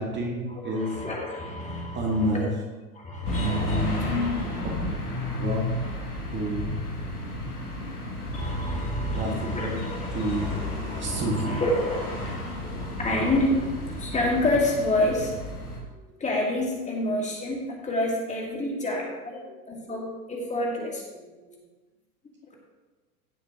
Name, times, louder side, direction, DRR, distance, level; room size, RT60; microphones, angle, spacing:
voice 1, 0.0-1.0 1.9-2.5 5.3-5.7 6.3-6.8 9.1-10.5 11.0-11.6 15.9-16.0 16.9-17.1 19.4-19.7 21.1-21.7, right 1 dB, 25° right, -1 dB, 2.0 m, -30 dB
voice 2, 0.8-2.0 2.3-2.4 3.0-4.5 8.3-10.6 10.9-12.3 12.6-15.3 16.2-19.4 19.7-21.0, left 1 dB, 15° left, -2 dB, 2.2 m, -28 dB
sound 1, 3.2-15.8, left 1 dB, 80° left, 2.4 m, -32 dB
16.0 x 7.1 x 3.0 m, 1.2 s
figure-of-eight pair, 95°, 45 cm